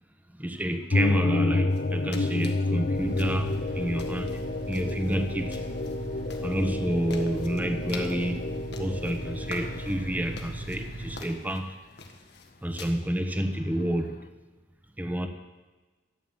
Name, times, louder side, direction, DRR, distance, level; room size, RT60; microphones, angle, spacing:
voice 1, 0.3-4.4 4.7-5.6 6.4-8.5 8.8-11.7 12.6-14.2 15.0-15.3, right 1 dB, 10° right, 7 dB, 1.1 m, -29 dB
sound 1, 0.9-10.3, left 2 dB, 50° left, 0.5 m, -30 dB
sound 2, 1.7-12.9, left 4 dB, 65° left, 1.6 m, -47 dB
sound 3, 2.9-11.2, right 1 dB, 70° right, 2.1 m, -37 dB
13.0 x 9.4 x 7.3 m, 1.2 s
head